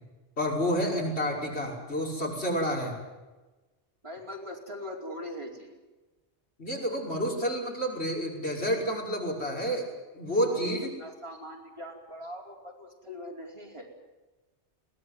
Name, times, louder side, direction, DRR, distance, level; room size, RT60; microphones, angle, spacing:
voice 1, 0.4-3.0 6.6-9.9 10.1-10.9, equal, 65° left, -2 dB, 5.9 m, -29 dB
voice 2, 4.0-5.8 10.4-13.9, equal, 25° right, -1 dB, 4.6 m, -41 dB
22.0 x 18.0 x 9.6 m, 1.2 s
omnidirectional pair, 1.2 m